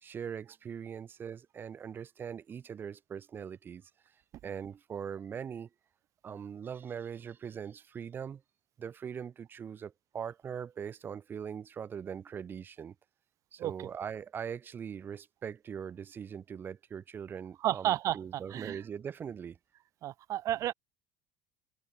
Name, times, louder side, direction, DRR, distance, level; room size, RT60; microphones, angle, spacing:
voice 1, 0.0-3.9 4.4-5.7 6.2-8.4 8.8-12.9 13.5-19.6, right 7 dB, 25° right, 2.6 m, -41 dB
voice 2, 17.6-18.8 20.0-20.7, right 13 dB, 40° right, 1.0 m, -32 dB
cardioid pair, 150°, 8 cm